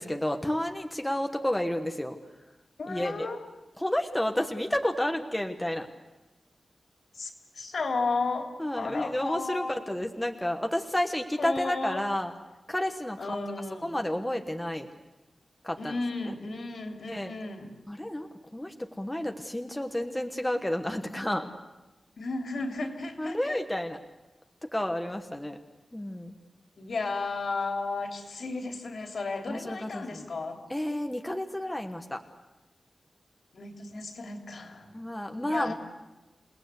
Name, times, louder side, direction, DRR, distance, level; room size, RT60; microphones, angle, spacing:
voice 1, 0.0-2.2 2.9-3.1 3.8-5.9 8.6-12.3 12.7-13.4 13.8-14.9 15.6-15.9 17.1-17.3 17.9-21.5 23.2-24.0 24.7-25.6 25.9-26.4 29.5-30.2 30.7-32.2 34.9-35.7, left 1 dB, 10° left, 4 dB, 1.2 m, -31 dB
voice 2, 2.8-3.4 7.1-8.5 8.8-9.7 11.4-12.0 13.2-13.9 15.8-17.7 22.2-23.6 26.8-30.6 33.5-34.9 35.4-35.7, left 3 dB, 65° left, 3 dB, 3.1 m, -34 dB
28.0 x 19.0 x 8.2 m, 1.1 s
wide cardioid pair, 150°, 0 cm